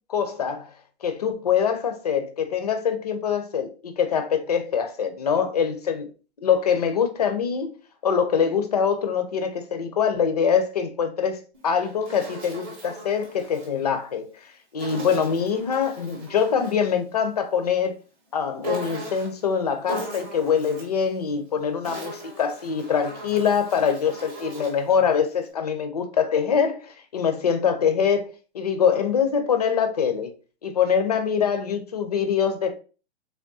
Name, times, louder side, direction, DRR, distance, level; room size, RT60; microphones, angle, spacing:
voice 1, 0.1-0.7 1.0-6.1 6.4-7.7 8.0-14.3 14.7-17.9 18.3-30.3 30.6-32.8, left 7 dB, 35° left, 0.4 m, -24 dB
Insect, 11.5-13.7 14.8-16.9 18.6-19.4 19.9-21.0 21.6-24.9, equal, 15° right, 0.7 m, -38 dB
3.5 x 3.5 x 2.6 m
hypercardioid pair, 165°, 35 cm